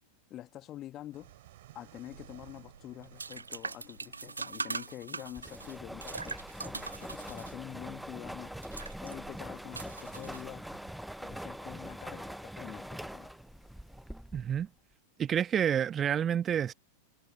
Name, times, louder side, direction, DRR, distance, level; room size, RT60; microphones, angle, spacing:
voice 1, 0.3-1.3 1.7-8.5 9.0-10.7 11.2-13.3, left 13 dB, 35° left, 1.3 m, -46 dB
sound 1, 1.1-10.7, right 16 dB, 55° right, 6.2 m, -60 dB
sound 2, 2.0-10.9, right 4 dB, 80° right, 0.5 m, -42 dB
sound 3, 5.4-14.7, equal, ahead, 0.4 m, -43 dB
voice 2, 14.3-14.7 15.2-16.7, right 9 dB, 25° right, 1.2 m, -29 dB
figure-of-eight pair, 90°, 0 cm